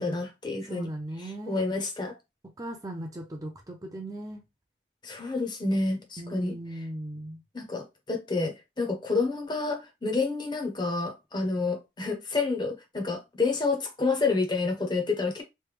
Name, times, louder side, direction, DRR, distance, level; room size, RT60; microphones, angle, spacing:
voice 1, 0.0-0.9 1.2-2.2 5.0-6.5 7.5-15.4, left 3 dB, 25° left, 0.7 m, -29 dB
voice 2, 0.7-1.6 2.6-4.4 6.2-7.4, right 1 dB, 20° right, 0.5 m, -38 dB
3.2 x 2.2 x 3.2 m
head